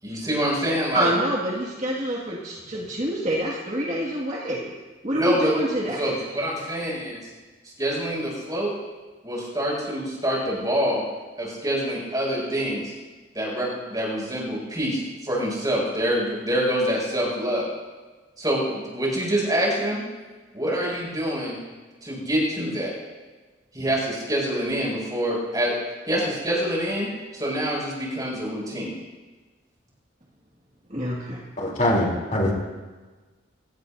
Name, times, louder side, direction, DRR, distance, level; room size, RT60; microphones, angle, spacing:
voice 1, 0.0-1.1 5.1-5.5 6.0-7.2 7.8-8.7 9.2-11.0 11.4-12.9 13.3-17.7 18.4-20.0 20.5-21.6 22.0-22.9 23.7-25.7 26.1-27.1 27.3-28.9, equal, 20° right, -4 dB, 6.6 m, -26 dB
voice 2, 0.9-4.7 5.0-6.2 30.9-31.4, equal, 35° right, -3 dB, 2.0 m, -26 dB
voice 3, 31.6-32.5, left 1 dB, 40° left, -2 dB, 3.5 m, -22 dB
25.5 x 17.0 x 2.7 m, 1.3 s
head